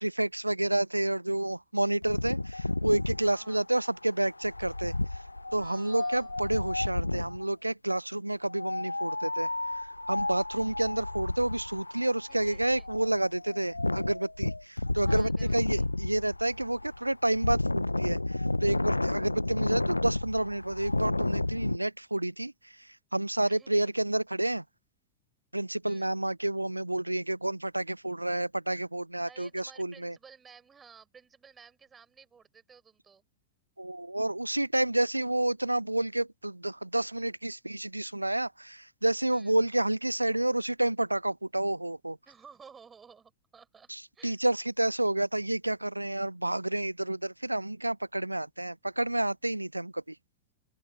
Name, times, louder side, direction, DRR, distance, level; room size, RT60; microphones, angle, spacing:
voice 1, 0.0-4.9 5.5-9.5 9.7-22.5 22.8-24.6 25.5-30.2 33.8-42.2 43.9-50.2, right 1 dB, 85° right, 0.3 m, -30 dB
Wind, 2.0-7.4 8.5-21.8, left 2 dB, 85° left, 0.9 m, -32 dB
voice 2, 3.2-3.7 5.6-6.3 12.3-12.9 15.1-15.9 23.4-23.9 25.8-26.1 29.3-33.2 39.3-39.5 42.3-43.9 44.1-44.4, right 6 dB, 20° right, 5.6 m, -55 dB
open air
figure-of-eight pair, 90°, 0 cm